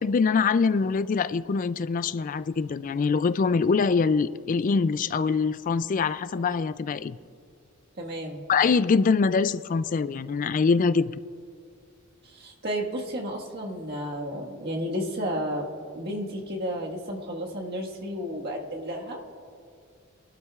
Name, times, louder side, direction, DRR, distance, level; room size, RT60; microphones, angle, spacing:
voice 1, 0.0-7.2 8.5-11.1, left 5 dB, 40° left, 0.3 m, -24 dB
voice 2, 8.0-8.4 12.2-15.7 15.9-19.2, equal, 50° right, 1.6 m, -32 dB
23.0 x 12.5 x 2.4 m
head